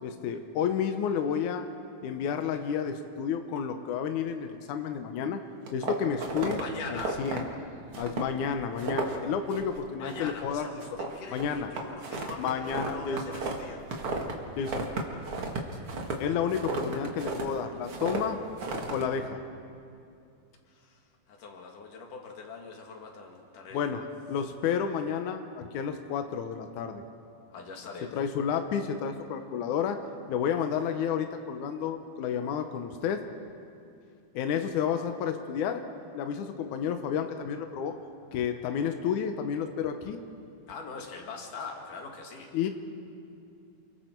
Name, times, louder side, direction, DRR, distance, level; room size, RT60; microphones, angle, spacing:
voice 1, 0.0-1.6 2.0-5.4 5.7-6.6 6.9-7.4 8.0-10.7 11.3-11.7 12.4-13.2 14.6-14.9 16.2-18.4 18.9-19.4 23.7-24.0 24.3-27.0 28.1-30.0 30.3-33.2 34.3-35.8 36.1-37.9 38.3-40.2 42.5-42.7, left 7 dB, 75° left, 6 dB, 1.8 m, -31 dB
sound 1, 5.7-6.6 7.0-7.4 7.9-8.3 8.6-9.2 9.5-9.8 10.1-10.5 10.8-14.3 14.6-17.5 17.9-18.2 18.6-19.0, right 3 dB, 45° right, 1.9 m, -33 dB
voice 2, 6.6-7.2 10.0-13.8 20.7-24.0 27.5-28.1 40.7-42.6, left 4 dB, 55° left, 1 dB, 3.4 m, -42 dB
29.0 x 22.5 x 4.5 m, 2.5 s
omnidirectional pair, 4.6 m